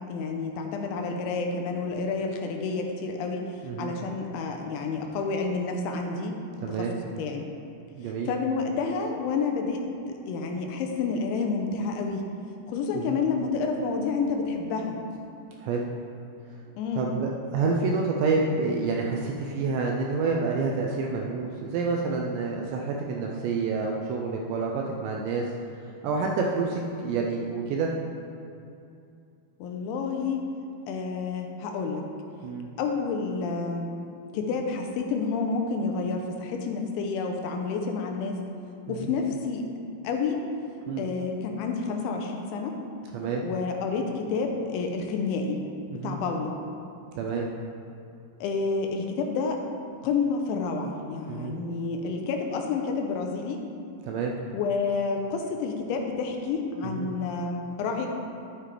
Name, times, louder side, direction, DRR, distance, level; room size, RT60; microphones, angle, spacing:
voice 1, 0.1-3.4 3.8-6.4 6.7-7.4 8.3-12.2 12.7-15.0 16.8-17.1 29.6-30.4 30.9-32.0 32.8-33.9 34.3-38.4 38.9-39.6 40.0-40.4 41.0-42.7 43.4-45.6 46.0-46.5 48.4-49.6 50.0-53.6 54.5-58.1, left 4 dB, 85° left, 2 dB, 3.0 m, -29 dB
voice 2, 6.6-6.9 8.0-8.3 12.9-13.2 15.6-15.8 17.0-25.5 26.0-27.9 32.4-32.7 38.9-39.1 40.9-41.1 43.1-43.4 45.9-46.2 47.2-47.5 51.3-51.5 54.0-54.3 56.8-57.1, right 4 dB, 80° right, -1 dB, 2.6 m, -28 dB
11.5 x 7.4 x 3.4 m, 2.6 s
omnidirectional pair, 5.6 m